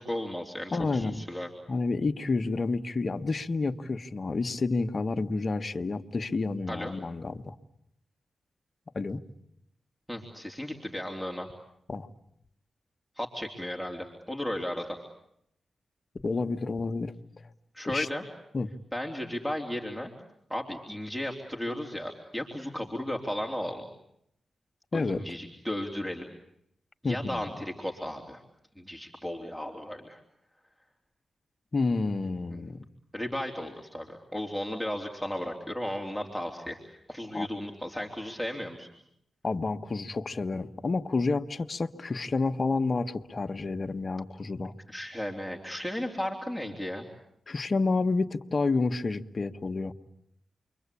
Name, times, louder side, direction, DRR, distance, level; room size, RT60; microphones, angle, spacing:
voice 1, 0.0-1.5 6.7-6.9 10.1-11.5 13.2-15.0 17.7-18.2 18.9-20.1 20.5-23.8 24.9-26.2 27.0-28.4 28.8-30.2 32.5-32.6 33.1-38.9 44.9-47.1, left 1 dB, 5° right, 1 dB, 3.5 m, -35 dB
voice 2, 0.7-1.2 1.7-7.5 8.9-9.2 11.9-12.1 16.2-17.1 17.9-18.1 18.5-18.7 24.9-25.4 27.0-27.5 31.7-32.8 37.3-37.5 39.4-44.7 47.5-49.9, left 3 dB, 50° left, 8 dB, 1.5 m, -29 dB
29.5 x 24.0 x 8.5 m, 0.76 s
cardioid pair, 50°, 0 cm